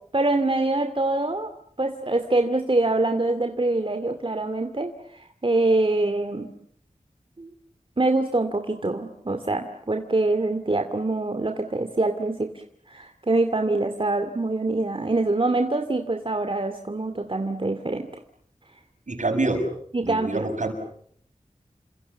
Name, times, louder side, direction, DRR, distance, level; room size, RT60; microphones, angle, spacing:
voice 1, 0.1-1.5 1.8-6.5 7.4-7.5 8.0-18.1 19.9-20.5, right 2 dB, 40° right, 6 dB, 2.4 m, -25 dB
voice 2, 19.1-19.7 20.0-20.7, right 2 dB, 70° right, 5 dB, 7.0 m, -25 dB
29.5 x 26.5 x 7.1 m, 0.66 s
wide cardioid pair, 60°, 13 cm